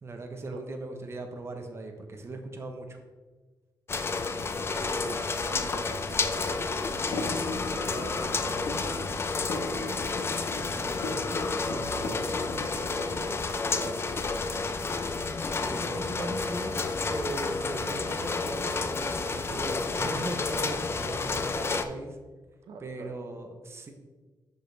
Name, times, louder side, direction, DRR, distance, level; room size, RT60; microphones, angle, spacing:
voice 1, 0.0-3.0 15.6-16.7 17.1-22.2 22.8-23.9, right 2 dB, 35° right, 5 dB, 0.8 m, -38 dB
sound 1, 3.9-21.8, left 4 dB, 30° left, 0.4 m, -30 dB
voice 2, 4.8-9.0 9.5-10.3 10.8-12.4 12.7-14.4 22.7-23.2, right 4 dB, 75° right, 5 dB, 0.6 m, -45 dB
sound 2, 6.8-12.7, left 2 dB, 80° left, 1.1 m, -38 dB
6.1 x 5.2 x 3.3 m, 1.3 s
cardioid pair, 115°, 8 cm